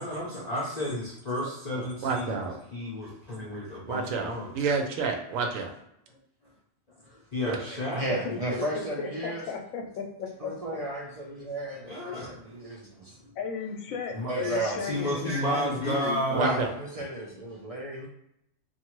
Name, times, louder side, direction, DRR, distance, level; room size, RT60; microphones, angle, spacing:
voice 1, 0.0-4.6 7.3-8.0 11.8-12.4 13.2-13.3 14.1-14.6 14.8-16.6, equal, 45° left, -6 dB, 0.6 m, -32 dB
voice 2, 2.0-2.6 3.9-5.7 7.4-7.6 16.3-16.7, right 4 dB, 85° right, 3 dB, 1.0 m, -29 dB
voice 3, 7.7-9.4 10.4-13.2 14.1-14.8 16.3-18.1, right 1 dB, 55° right, -4 dB, 0.4 m, -33 dB
voice 4, 8.2-10.5 13.4-16.5, left 5 dB, 85° left, 2 dB, 1.0 m, -35 dB
2.6 x 2.4 x 2.9 m, 0.77 s
omnidirectional pair, 1.3 m